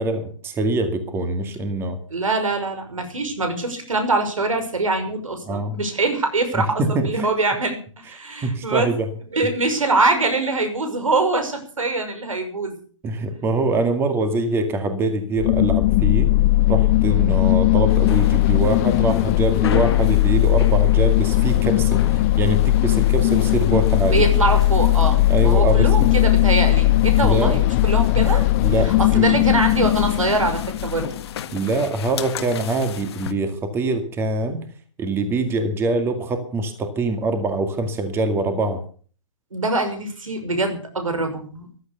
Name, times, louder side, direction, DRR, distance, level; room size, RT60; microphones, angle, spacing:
voice 1, 0.0-2.0 5.5-5.8 6.5-7.4 8.4-9.1 13.0-16.3 16.7-24.3 25.3-26.1 27.2-27.6 28.6-29.3 31.5-34.6 35.0-38.8, right 2 dB, 15° right, 8 dB, 2.0 m, -24 dB
voice 2, 2.1-8.9 9.3-12.8 24.0-28.4 28.8-31.1 39.5-41.7, right 3 dB, 90° right, 6 dB, 6.0 m, -23 dB
sound 1, 15.4-31.3, left 16 dB, 30° left, 0.7 m, -18 dB
sound 2, 17.9-33.3, left 9 dB, 50° left, 1.7 m, -35 dB
15.0 x 12.0 x 6.7 m, 0.43 s
hypercardioid pair, 145°, 17 cm